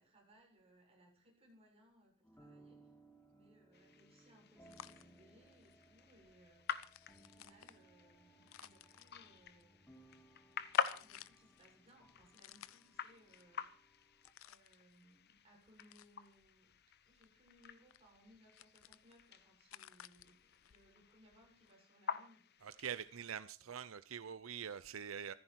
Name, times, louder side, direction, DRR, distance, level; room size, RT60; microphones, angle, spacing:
voice 1, 0.0-2.9 3.3-6.8 7.1-14.1 14.4-16.8 17.0-22.5 23.6-23.7 25.3-25.4, equal, 30° right, -1 dB, 7.2 m, -67 dB
sound 1, 2.2-14.3, right 2 dB, 10° left, 1.9 m, -65 dB
sound 2, 3.7-23.3, left 7 dB, 55° left, 1.0 m, -47 dB
sound 3, 4.7-21.7, left 10 dB, 90° left, 0.6 m, -60 dB
voice 2, 22.6-25.3, right 8 dB, 80° right, 14 dB, 0.6 m, -45 dB
15.5 x 14.0 x 4.6 m, 0.43 s
head